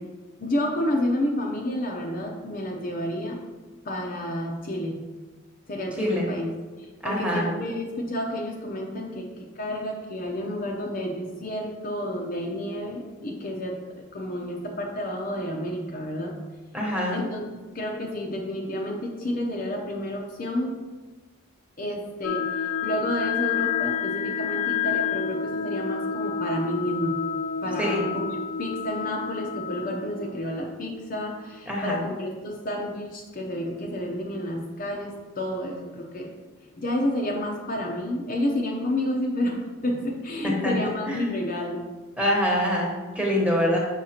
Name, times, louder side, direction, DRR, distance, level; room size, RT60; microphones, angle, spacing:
voice 1, 0.4-3.4 3.8-5.0 5.7-6.5 6.8-9.3 9.6-16.3 17.1-20.8 21.8-27.2 27.6-36.3 36.8-41.8, left 1 dB, 40° left, 0 dB, 0.6 m, -30 dB
voice 2, 7.0-7.5 16.7-17.2 27.8-28.0 31.7-32.0 40.4-40.7 41.1-41.3 42.2-43.8, equal, 5° right, -3 dB, 1.1 m, -25 dB
sound 1, 22.2-31.8, left 7 dB, 75° left, 0.4 m, -29 dB
6.4 x 5.9 x 2.9 m, 1.3 s
head